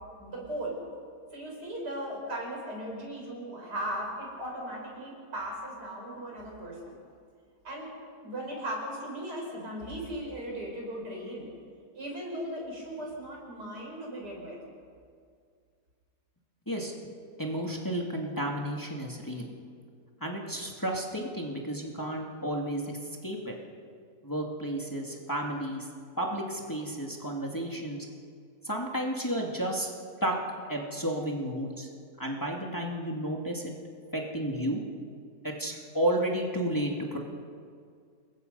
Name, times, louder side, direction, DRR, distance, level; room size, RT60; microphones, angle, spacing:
voice 1, 0.2-0.8 1.3-7.0 7.6-7.9 8.2-11.5 12.0-14.6, right 1 dB, 85° right, -2 dB, 6.9 m, -37 dB
voice 2, 17.4-19.5 20.2-22.9 23.2-23.6 24.2-25.9 26.2-28.0 28.6-29.9 30.2-30.4 30.7-31.9 32.2-33.7 34.1-34.8 35.4-37.2, right 1 dB, 10° left, 0 dB, 2.2 m, -32 dB
28.5 x 22.0 x 5.5 m, 2.1 s
omnidirectional pair, 1.7 m